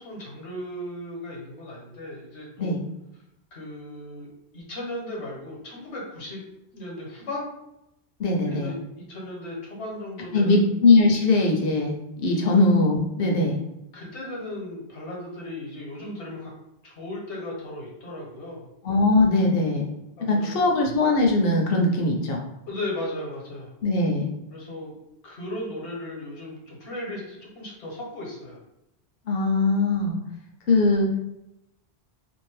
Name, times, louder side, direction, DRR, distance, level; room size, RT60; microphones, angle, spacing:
voice 1, 0.0-2.8 3.5-6.4 6.7-7.4 8.5-10.6 12.4-12.5 13.9-16.5 16.8-18.6 20.2-20.7 22.7-23.7 24.5-24.9 25.2-28.6, left 1 dB, 80° left, -2 dB, 1.2 m, -36 dB
voice 2, 8.2-8.7 10.3-13.5 18.8-19.9 20.3-22.4 23.8-24.3 29.3-30.2 30.7-31.1, left 2 dB, 65° left, 1 dB, 0.8 m, -21 dB
2.6 x 2.5 x 3.2 m, 0.88 s
omnidirectional pair, 1.1 m